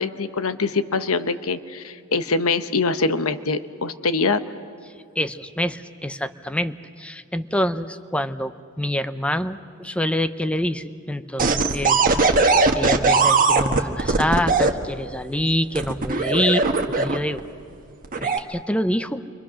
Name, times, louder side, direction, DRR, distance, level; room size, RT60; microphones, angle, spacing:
voice 1, 0.0-4.4, left 4 dB, 70° left, 11 dB, 1.0 m, -24 dB
voice 2, 5.2-17.4 18.1-19.2, equal, 5° left, 11 dB, 0.7 m, -26 dB
sound 1, 11.4-14.7 15.7-17.4 18.0-18.4, right 3 dB, 40° right, 1.4 m, -19 dB
29.0 x 24.5 x 6.4 m, 2.4 s
head